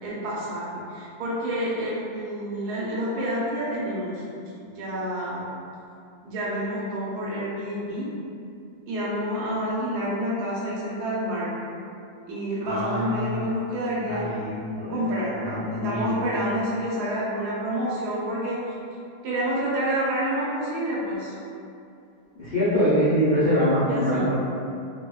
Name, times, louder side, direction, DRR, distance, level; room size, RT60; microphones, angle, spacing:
voice 1, 0.0-4.2 4.7-5.5 6.2-8.1 8.9-11.5 12.3-14.2 14.9-18.6 19.2-21.3 23.9-24.2, equal, 75° right, -6 dB, 1.1 m, -28 dB
voice 2, 12.6-13.5 14.1-15.0 15.4-16.1 22.4-24.3, equal, 75° left, -13 dB, 0.5 m, -24 dB
2.8 x 2.0 x 2.2 m, 2.5 s
omnidirectional pair, 1.8 m